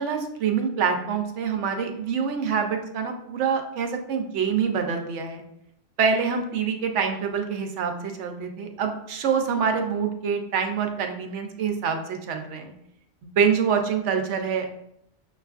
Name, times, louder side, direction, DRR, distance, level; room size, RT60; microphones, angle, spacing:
voice 1, 0.0-5.4 6.0-12.7 13.4-14.8, right 6 dB, 75° right, 5 dB, 0.9 m, -26 dB
6.2 x 2.3 x 2.4 m, 0.76 s
omnidirectional pair, 1.3 m